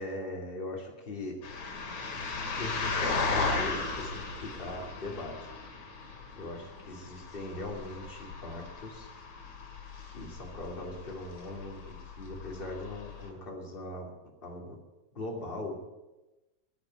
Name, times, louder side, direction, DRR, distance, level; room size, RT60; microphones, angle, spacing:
voice 1, 0.0-1.3 2.6-5.5 6.4-9.1 10.1-14.1 14.4-14.8 15.1-15.8, left 2 dB, 20° left, 0 dB, 2.5 m, -40 dB
sound 1, 1.4-13.3, left 4 dB, 60° left, 3.3 m, -36 dB
12.5 x 8.9 x 9.2 m, 1.0 s
omnidirectional pair, 3.6 m